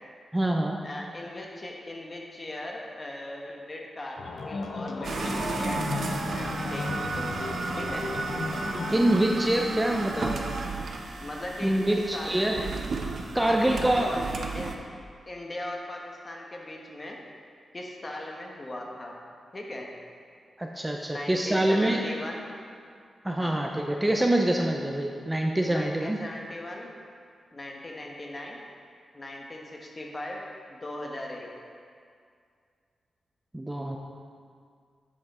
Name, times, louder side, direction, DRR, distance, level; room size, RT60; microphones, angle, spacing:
voice 1, 0.3-0.8 8.7-10.3 11.6-12.6 13.3-14.2 20.6-22.0 23.2-26.2 33.5-34.0, right 1 dB, 10° right, 1 dB, 0.5 m, -25 dB
voice 2, 0.8-7.5 7.7-8.1 10.2-10.4 11.2-12.7 13.3-14.7 15.3-17.2 17.7-19.2 19.5-19.9 21.1-22.4 23.4-23.7 25.7-26.9 27.5-28.6 29.1-30.4 30.7-31.5, left 1 dB, 30° left, 0 dB, 1.2 m, -39 dB
sound 1, 4.2-9.3, left 3 dB, 60° left, 0.7 m, -34 dB
sound 2, 5.0-14.8, right 3 dB, 60° right, 0.6 m, -33 dB
9.5 x 5.7 x 4.2 m, 2.2 s
wide cardioid pair, 110°, 0 cm